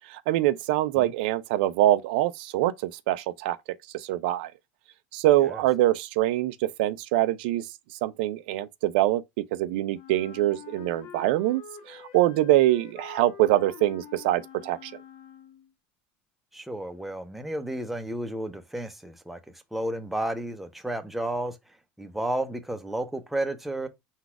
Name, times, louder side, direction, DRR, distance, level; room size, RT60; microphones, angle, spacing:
voice 1, 0.1-3.6 3.9-4.5 5.1-7.7 8.0-11.6 11.9-14.9, right 15 dB, 80° right, 0.4 m, -24 dB
Wind instrument woodwind instrument, 9.9-15.7, left 8 dB, 70° left, 0.9 m, -46 dB
voice 2, 16.5-21.6 22.0-23.9, right 1 dB, 5° right, 0.6 m, -32 dB
4.0 x 2.3 x 4.5 m
supercardioid pair, 120°, 5 cm